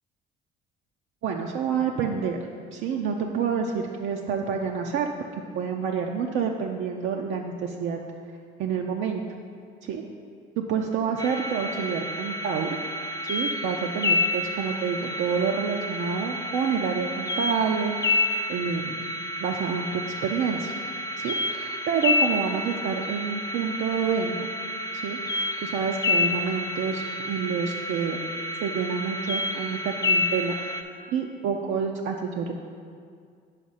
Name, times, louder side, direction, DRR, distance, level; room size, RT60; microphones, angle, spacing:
voice 1, 1.2-2.4 2.7-5.1 5.5-8.0 8.6-9.2 9.8-10.0 10.6-12.8 13.3-18.2 18.5-19.1 19.4-20.7 21.2-24.4 24.9-28.2 28.6-30.7 31.1-32.5, right 6 dB, 75° right, 1 dB, 0.5 m, -28 dB
sound 1, 11.2-30.8, left 2 dB, 15° left, 0.4 m, -29 dB
5.1 x 4.9 x 5.6 m, 2.2 s
cardioid pair, 90°, 20 cm